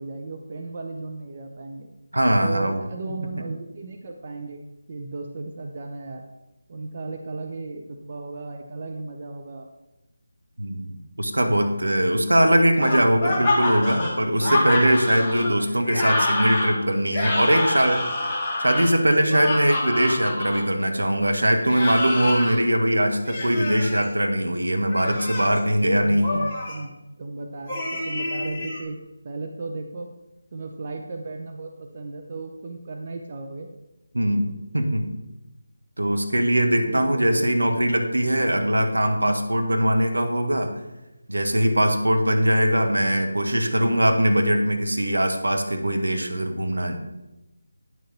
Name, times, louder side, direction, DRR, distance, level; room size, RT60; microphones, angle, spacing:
voice 1, 0.0-1.9 2.4-6.2 6.7-9.7 26.0-29.0 29.2-30.1 30.5-33.7 36.8-37.9, right 3 dB, 35° right, 3 dB, 0.6 m, -35 dB
voice 2, 2.1-2.8 10.6-18.1 18.6-26.4 34.1-35.1 36.0-40.7 41.3-47.0, equal, 70° right, 4 dB, 1.2 m, -21 dB
sound 1, 12.8-20.6 21.6-22.6 23.3-24.0 24.8-25.6 26.2-26.8 27.7-28.8, left 2 dB, 15° left, 1.5 m, -27 dB
9.1 x 6.5 x 4.2 m, 0.97 s
figure-of-eight pair, 160°, 0 cm